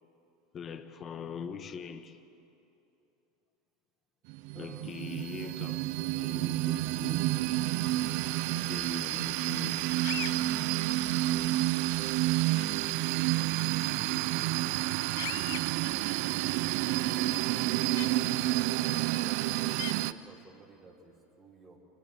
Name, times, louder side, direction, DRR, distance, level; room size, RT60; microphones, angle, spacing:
voice 1, 0.5-2.2 4.5-5.8 6.2-7.3 8.5-9.9, left 6 dB, 35° left, 1.4 m, -42 dB
sound 1, 4.3-20.1, right 17 dB, 65° right, 0.6 m, -29 dB
voice 2, 4.5-5.9 9.2-9.7 11.9-14.9 18.6-21.8, right 3 dB, 25° right, 4.0 m, -56 dB
sound 2, 10.0-10.4 12.6-12.7 15.2-15.6 18.0-18.1 19.8-19.9, left 19 dB, 75° left, 0.4 m, -37 dB
30.0 x 28.5 x 3.6 m
supercardioid pair, 115°, 0 cm